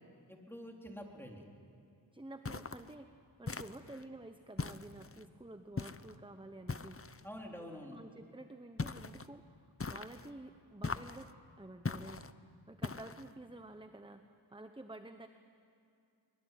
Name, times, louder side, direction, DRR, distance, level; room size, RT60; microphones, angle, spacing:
voice 1, 0.3-1.4 7.2-8.0, equal, 5° left, 0 dB, 3.8 m, -47 dB
voice 2, 2.1-7.0 7.8-11.3 11.6-14.2 14.5-15.3, right 2 dB, 10° right, 7 dB, 0.9 m, -51 dB
sound 1, 2.4-2.9 3.5-4.0 4.6-5.2 5.8-6.2 6.7-7.2 8.8-9.3 9.8-10.3 10.8-11.3 11.8-12.3 12.8-13.3, left 4 dB, 30° left, 0.7 m, -41 dB
23.5 x 22.0 x 9.3 m, 2.5 s
wide cardioid pair, 50°, 46 cm